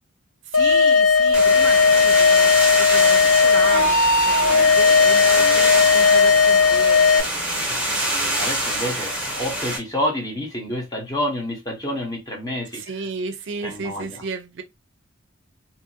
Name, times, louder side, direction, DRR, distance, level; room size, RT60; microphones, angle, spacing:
sound 1, 0.5-7.2, left 5 dB, 70° left, 0.6 m, -16 dB
voice 1, 0.5-7.7 12.7-14.6, right 4 dB, 55° right, 0.5 m, -33 dB
sound 2, 1.3-9.8, right 1 dB, 5° right, 0.9 m, -25 dB
voice 2, 4.5-5.7 7.7-13.1 13.6-14.2, left 1 dB, 20° left, 0.9 m, -29 dB
2.7 x 2.5 x 2.6 m
head